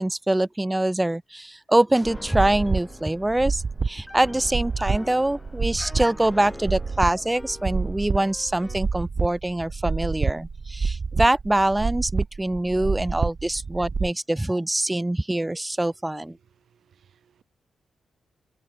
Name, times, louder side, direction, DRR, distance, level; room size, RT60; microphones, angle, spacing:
voice 1, 0.0-16.4, right 1 dB, 15° right, 1.9 m, -24 dB
Piano, 2.0-8.9, left 2 dB, 20° left, 6.0 m, -44 dB
sound 1, 2.0-14.1, right 4 dB, 45° right, 0.3 m, -28 dB
voice 2, 16.4-17.4, right 8 dB, 75° right, 6.6 m, -62 dB
cardioid pair, 60°, 0 cm